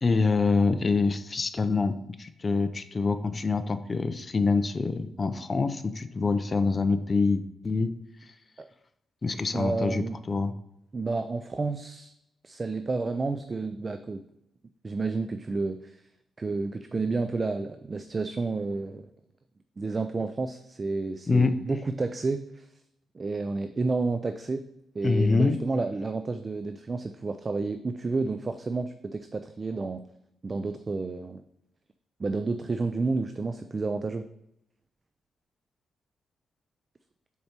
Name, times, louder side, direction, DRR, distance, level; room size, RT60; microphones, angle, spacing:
voice 1, 0.0-7.9 9.2-10.5 21.3-21.5 25.0-25.6, left 4 dB, 30° left, 10 dB, 0.5 m, -25 dB
voice 2, 9.5-10.2 10.9-12.1 12.4-14.2 14.8-16.0 16.4-19.0 19.8-22.7 23.1-24.6 24.9-30.0 30.4-31.4 32.2-34.2, right 3 dB, 30° right, 9 dB, 0.3 m, -30 dB
6.6 x 4.5 x 4.3 m, 0.82 s
cardioid pair, 125°, 0 cm